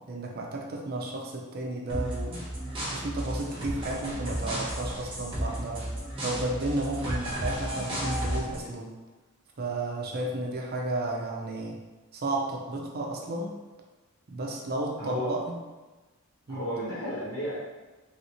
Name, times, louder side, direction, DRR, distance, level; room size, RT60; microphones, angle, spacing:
voice 1, 0.1-2.5 2.9-5.9 6.2-8.9 9.6-11.8 12.1-13.6 14.3-15.6 16.5-16.7, right 2 dB, 45° right, 0 dB, 0.5 m, -33 dB
sound 1, 1.9-8.7, right 1 dB, 25° right, 0.9 m, -33 dB
voice 2, 15.0-15.4 16.5-17.6, equal, 65° left, -12 dB, 1.0 m, -33 dB
3.1 x 2.7 x 2.9 m, 1.2 s
head